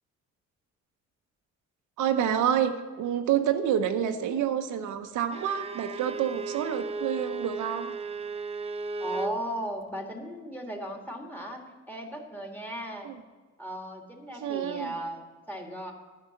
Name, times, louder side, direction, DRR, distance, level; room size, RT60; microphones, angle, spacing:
voice 1, 2.0-7.9 13.0-13.2 14.3-14.9, right 9 dB, 80° right, 6 dB, 0.8 m, -28 dB
Bowed string instrument, 5.3-9.4, right 3 dB, 20° right, 0.4 m, -35 dB
voice 2, 9.0-13.1 13.6-15.9, right 1 dB, 5° left, 2 dB, 1.7 m, -36 dB
10.5 x 5.5 x 7.2 m, 1.3 s
cardioid pair, 90°, 30 cm